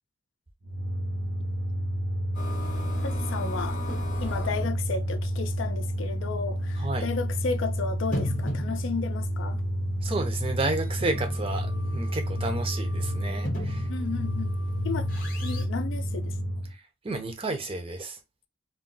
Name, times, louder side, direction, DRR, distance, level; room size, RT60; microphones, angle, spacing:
sound 1, 0.6-16.7, equal, 75° right, 0.7 m, -30 dB
sound 2, 2.3-4.8 5.6-5.7 6.1-6.2 7.1-7.2 8.0-9.1 10.6-15.7, left 2 dB, 45° left, 0.7 m, -36 dB
voice 1, 3.0-3.8 4.2-9.6 13.9-14.5 14.8-15.1 15.4-16.4, left 4 dB, 75° left, 0.4 m, -33 dB
voice 2, 6.8-7.1 10.0-13.9 16.7-18.2, right 2 dB, 30° right, 0.5 m, -32 dB
2.3 x 2.1 x 3.7 m
head